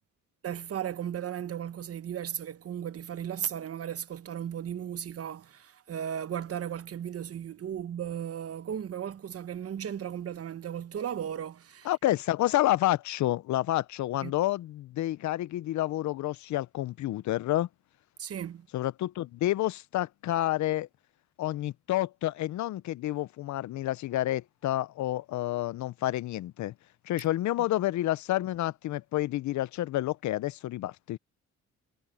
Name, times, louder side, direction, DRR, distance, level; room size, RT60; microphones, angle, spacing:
voice 1, 0.4-11.9 14.2-14.3 18.2-18.7, right 9 dB, 50° right, 1.2 m, -36 dB
voice 2, 11.9-17.7 18.7-20.9 21.4-26.7 27.0-31.2, left 15 dB, 70° left, 0.6 m, -29 dB
cardioid pair, 90°, 30 cm